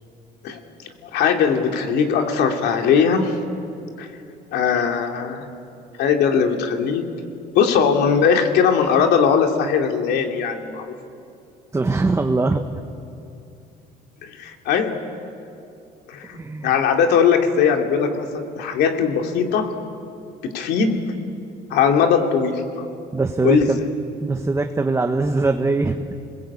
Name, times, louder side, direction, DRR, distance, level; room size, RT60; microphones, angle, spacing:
voice 1, 1.0-3.4 4.0-4.1 4.5-5.5 6.0-7.1 7.5-10.9 14.2-15.0 16.1-19.7 20.4-21.1 21.7-22.9 23.4-23.7, left 6 dB, 80° left, 3 dB, 2.7 m, -20 dB
voice 2, 11.7-12.6 16.3-16.7 23.1-23.8 24.2-26.1, right 3 dB, 15° right, 5 dB, 1.2 m, -21 dB
29.0 x 21.0 x 8.6 m, 2.6 s
cardioid pair, 110°, 17 cm